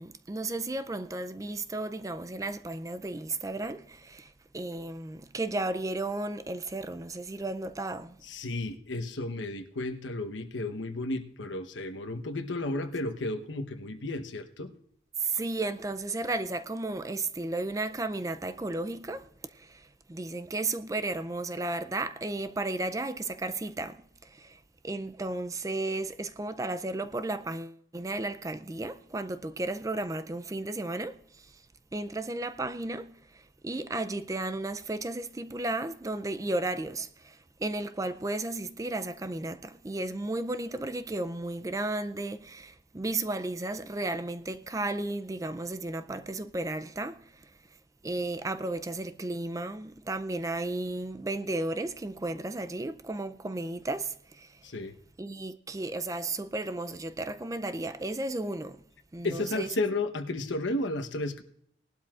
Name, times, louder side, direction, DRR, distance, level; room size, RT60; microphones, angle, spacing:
voice 1, 0.0-8.2 15.2-31.5 31.9-47.5 48.0-54.6 55.2-58.8 59.1-59.7, right 2 dB, 15° right, 0.4 m, -34 dB
voice 2, 8.2-14.7 54.6-55.0 59.2-61.4, left 2 dB, 80° left, 1.1 m, -33 dB
19.0 x 12.0 x 2.5 m
head